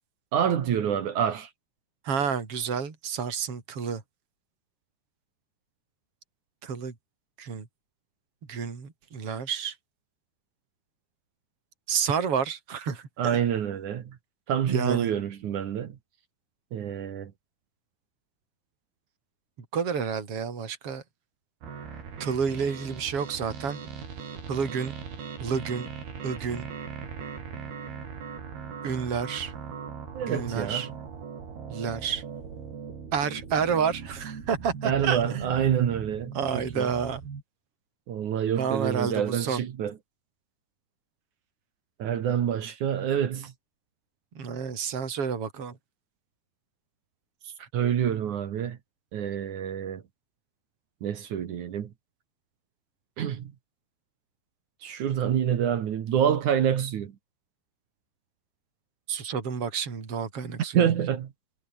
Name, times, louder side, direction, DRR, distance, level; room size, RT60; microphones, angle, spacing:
voice 1, 0.3-1.5 13.2-14.2 14.5-16.0 16.7-17.3 30.1-30.9 34.8-36.9 38.1-40.0 42.0-43.5 47.4-48.8 49.1-50.0 51.0-51.9 53.2-53.5 54.8-57.1 60.7-61.3, right 9 dB, 55° right, 2.8 m, -27 dB
voice 2, 2.0-4.0 6.6-6.9 7.4-7.7 8.5-9.7 11.9-13.4 14.7-15.1 19.7-21.0 22.2-23.8 24.5-25.0 25.4-25.9 26.2-26.7 28.8-29.5 30.3-30.9 31.7-32.2 33.1-35.6 36.3-37.2 38.6-39.6 44.3-45.8 47.6-47.7 59.1-60.8, right 6 dB, 35° right, 4.7 m, -30 dB
sound 1, 21.6-37.4, right 6 dB, 75° right, 6.4 m, -40 dB
omnidirectional pair, 4.5 m